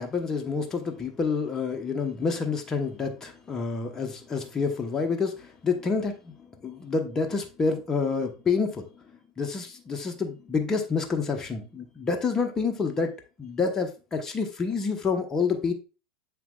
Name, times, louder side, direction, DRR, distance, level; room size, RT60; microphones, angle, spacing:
voice 1, 0.0-9.0 9.4-15.7, left 5 dB, 25° left, 5 dB, 1.1 m, -28 dB
7.3 x 5.8 x 2.4 m, 0.32 s
hypercardioid pair, 95°, 2 cm